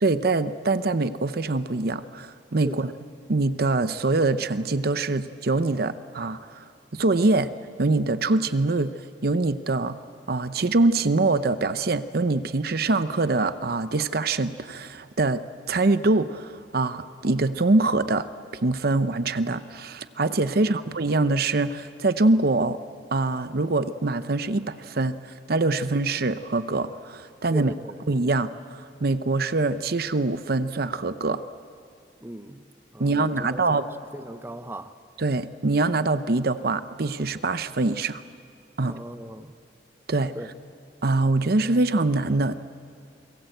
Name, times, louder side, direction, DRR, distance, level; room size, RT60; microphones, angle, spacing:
voice 1, 0.0-2.9 3.3-6.7 6.9-7.5 7.8-8.9 9.2-10.0 10.3-15.4 15.7-18.3 18.6-22.8 23.1-27.7 28.1-31.4 33.0-33.9 35.2-38.2 38.8-39.0 40.1-40.3 41.0-42.6, right 3 dB, 60° right, 12 dB, 0.8 m, -24 dB
voice 2, 27.5-28.0 32.2-32.7 32.9-33.8 34.1-34.9 38.8-39.5 40.3-40.5, right 1 dB, 15° right, 10 dB, 0.8 m, -38 dB
28.5 x 22.5 x 8.0 m, 2.3 s
head